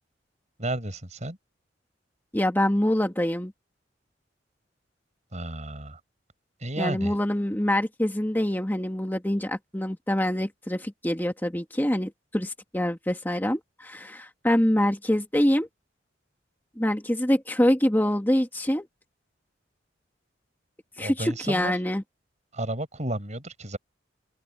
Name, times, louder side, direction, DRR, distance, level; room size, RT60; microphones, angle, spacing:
voice 1, 0.6-1.4 5.3-6.0 6.6-7.1 21.0-21.7 22.5-23.8, right 1 dB, 40° right, 5.5 m, -32 dB
voice 2, 2.3-3.5 6.8-15.7 16.8-18.9 21.0-22.0, left 1 dB, 10° left, 1.7 m, -25 dB
open air
head